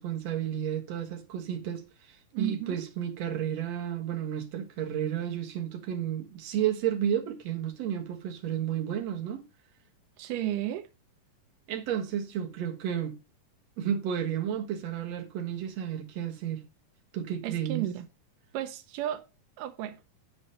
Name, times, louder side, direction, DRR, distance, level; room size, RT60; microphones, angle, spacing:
voice 1, 0.0-9.4 11.7-13.2 13.8-16.6 17.1-17.9, right 9 dB, 60° right, 2.5 m, -32 dB
voice 2, 2.3-2.8 10.2-10.9 17.4-18.1 18.5-19.3 19.6-20.0, right 12 dB, 90° right, 2.3 m, -33 dB
10.0 x 5.0 x 5.2 m
omnidirectional pair, 3.7 m